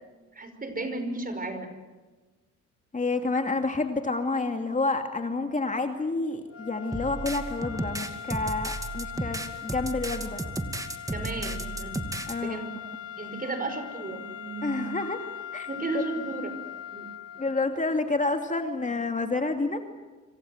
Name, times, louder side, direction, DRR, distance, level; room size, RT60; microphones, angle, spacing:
voice 1, 0.3-1.7 11.1-12.1 12.4-12.8 13.2-15.0 15.7-16.5 16.9-17.4, right 3 dB, 30° right, 8 dB, 5.5 m, -34 dB
voice 2, 2.9-10.4 12.3-12.6 14.6-15.2 15.5-15.7 17.4-19.8, left 3 dB, 25° left, 5 dB, 2.6 m, -29 dB
sound 1, 6.5-18.0, left 9 dB, 50° left, 1.9 m, -41 dB
sound 2, 6.9-12.3, right 2 dB, 10° right, 2.4 m, -34 dB
27.0 x 25.0 x 8.0 m, 1.3 s
cardioid pair, 90°, 30 cm